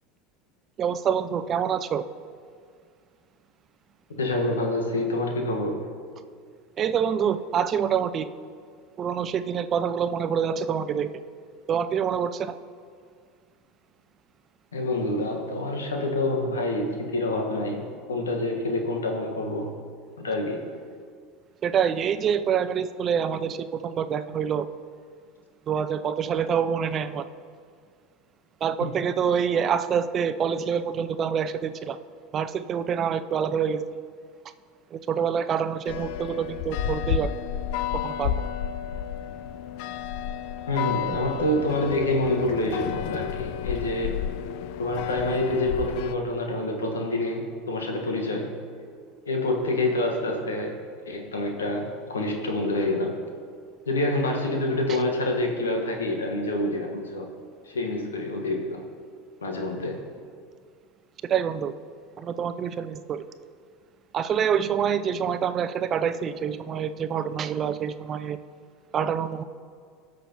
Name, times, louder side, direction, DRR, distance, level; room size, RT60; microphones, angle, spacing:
voice 1, 0.8-2.0 6.8-8.3 9.0-11.1 11.7-12.5 21.6-24.7 25.7-27.2 28.6-32.0 32.3-33.8 34.9-37.3 38.0-38.4 41.1-41.2 61.2-61.7 62.2-63.2 64.1-68.4 68.9-69.4, right 7 dB, 40° right, 11 dB, 0.5 m, -26 dB
voice 2, 4.2-5.8 14.7-19.7 20.2-20.6 28.8-28.9 40.7-44.2 44.8-48.5 49.3-50.8 51.1-53.1 53.8-57.3 57.6-58.8 59.4-60.0, left 1 dB, 90° left, 2 dB, 1.5 m, -27 dB
sound 1, 35.8-46.1, left 9 dB, 65° left, 0.4 m, -31 dB
18.5 x 6.2 x 3.0 m, 2.1 s
hypercardioid pair, 85°, 0 cm